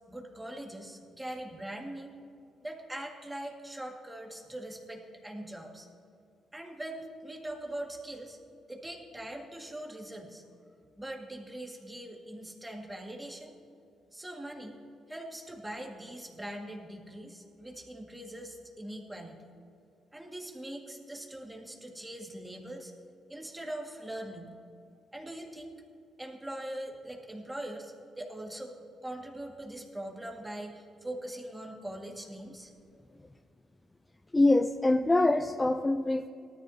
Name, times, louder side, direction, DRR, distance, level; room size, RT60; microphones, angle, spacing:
voice 1, 0.1-2.2 2.6-5.9 6.5-8.4 8.7-10.4 11.0-13.6 14.1-14.8 15.1-19.5 20.1-22.9 23.3-24.6 25.1-25.7 26.2-28.8 29.0-32.7, right 1 dB, 10° right, 0 dB, 2.1 m, -42 dB
voice 2, 34.3-36.3, left 2 dB, 15° left, 8 dB, 0.4 m, -24 dB
18.5 x 13.0 x 2.9 m, 2.5 s
cardioid pair, 90°, 0 cm